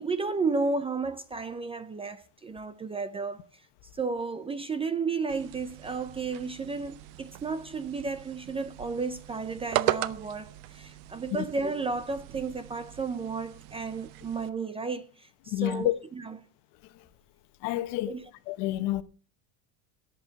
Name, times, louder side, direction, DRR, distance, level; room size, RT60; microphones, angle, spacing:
voice 1, 0.0-3.5 3.9-16.4 18.1-18.3, right 4 dB, 15° right, 0.5 m, -33 dB
sound 1, 5.3-14.5, right 16 dB, 75° right, 1.0 m, -37 dB
voice 2, 15.5-15.9 17.6-18.1 18.5-19.0, left 16 dB, 65° left, 1.2 m, -28 dB
17.0 x 8.4 x 4.0 m
cardioid pair, 170°, 44 cm